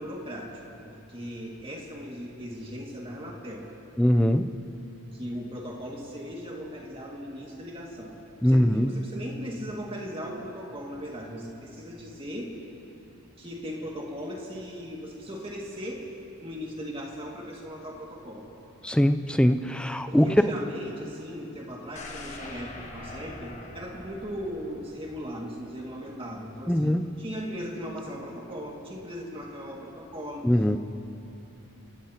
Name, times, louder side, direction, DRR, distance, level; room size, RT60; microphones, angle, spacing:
voice 1, 0.0-3.7 5.1-8.2 8.4-12.5 13.4-16.0 16.4-18.5 20.1-30.5, equal, 25° right, -2 dB, 2.1 m, -38 dB
voice 2, 4.0-4.5 8.4-8.9 18.8-20.3 26.7-27.1 30.4-30.8, equal, 5° left, 9 dB, 0.4 m, -22 dB
sound 1, 22.0-25.9 26.3-26.4, left 2 dB, 35° left, 1.5 m, -44 dB
28.0 x 16.5 x 2.9 m, 2.9 s
head